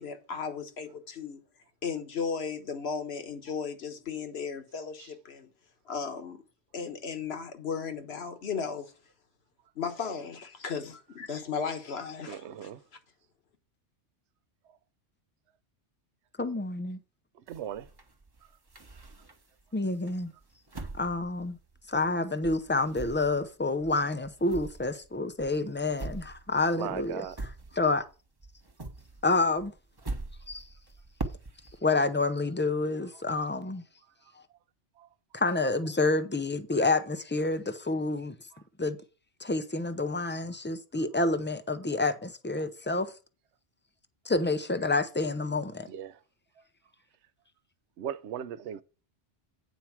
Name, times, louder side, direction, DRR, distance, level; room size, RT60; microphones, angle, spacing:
voice 1, 0.0-1.4 1.8-5.5 5.9-6.4 6.7-8.9 9.7-12.7, left 6 dB, 60° left, 1.4 m, -35 dB
voice 2, 12.3-12.8 14.7-14.8 17.3-17.9 20.8-20.9 26.8-27.5 33.1-33.2 34.3-34.4 35.0-35.1 38.5-38.6 45.9-46.2 48.0-48.8, right 9 dB, 70° right, 0.9 m, -38 dB
voice 3, 16.4-17.0 19.7-20.3 20.9-21.6 21.9-27.2 27.7-28.0 29.2-29.7 30.5-30.6 31.8-33.8 35.3-38.4 38.8-39.0 39.4-43.1 44.3-45.9, left 3 dB, 15° left, 0.4 m, -28 dB
sound 1, 17.5-19.6 20.1-22.2 22.4-28.1 28.4-31.8, right 2 dB, 20° right, 0.9 m, -42 dB
9.1 x 4.6 x 5.8 m
omnidirectional pair, 1.2 m